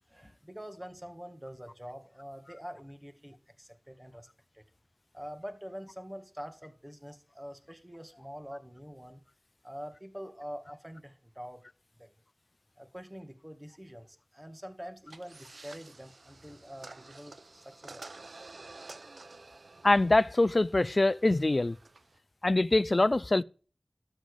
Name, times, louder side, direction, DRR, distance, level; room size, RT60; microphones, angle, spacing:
voice 1, 0.1-4.3 4.5-4.6 5.1-9.2 9.6-11.6 12.0-12.1 12.8-18.5, equal, 15° right, 2.0 m, -45 dB
sound 1, 15.1-22.2, right 3 dB, 90° right, 0.7 m, -51 dB
voice 2, 19.8-21.8 22.4-23.4, left 2 dB, 50° left, 0.4 m, -24 dB
12.5 x 7.0 x 5.1 m
wide cardioid pair, 60°, 0 cm